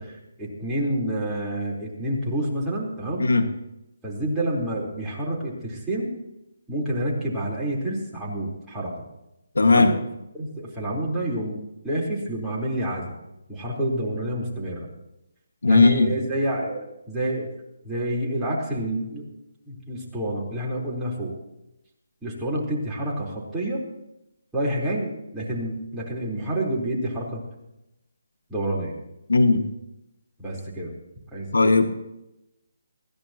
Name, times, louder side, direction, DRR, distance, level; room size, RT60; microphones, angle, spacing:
voice 1, 0.0-3.3 4.0-6.1 6.7-8.9 9.7-10.0 10.3-11.6 11.8-13.2 13.5-14.9 15.7-17.5 17.8-19.2 19.7-21.3 22.2-23.8 24.5-27.4 28.5-28.9 30.4-30.9 31.3-31.5, right 1 dB, 5° right, -6 dB, 4.2 m, -28 dB
voice 2, 3.2-3.5 9.6-9.9 15.6-16.1 29.3-29.6 31.5-32.0, left 3 dB, 85° left, 6 dB, 1.9 m, -17 dB
20.5 x 16.5 x 3.0 m, 0.90 s
figure-of-eight pair, 155°, 0 cm